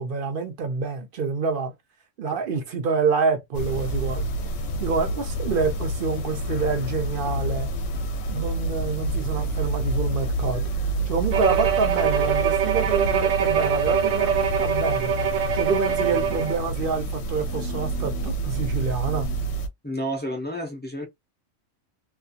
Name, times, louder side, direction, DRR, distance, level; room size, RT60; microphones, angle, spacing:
voice 1, 0.0-1.7 2.2-4.2 4.8-7.7 8.3-10.6 11.1-15.1 15.5-19.3, right 5 dB, 55° right, 0.6 m, -27 dB
sound 1, 3.5-19.7, right 1 dB, 80° left, 0.9 m, -28 dB
Bowed string instrument, 11.3-16.7, right 8 dB, 80° right, 0.9 m, -24 dB
voice 2, 19.8-21.1, equal, 15° left, 0.3 m, -30 dB
2.4 x 2.4 x 2.7 m
omnidirectional pair, 1.3 m